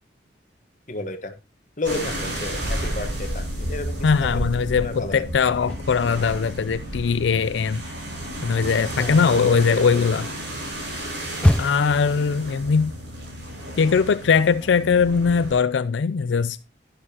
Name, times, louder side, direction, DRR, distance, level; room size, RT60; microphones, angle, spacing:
voice 1, 0.9-1.3 1.8-4.5 4.8-5.2 9.0-10.1, left 2 dB, 45° left, 1.3 m, -31 dB
sound 1, 1.8-15.6, right 1 dB, 70° right, 6.0 m, -32 dB
voice 2, 4.0-7.8 8.4-10.3 11.6-12.9 13.8-16.6, left 5 dB, 85° left, 0.4 m, -20 dB
sound 2, 5.6-6.7 7.0-12.1, left 1 dB, 5° left, 0.4 m, -27 dB
11.0 x 10.5 x 2.9 m
head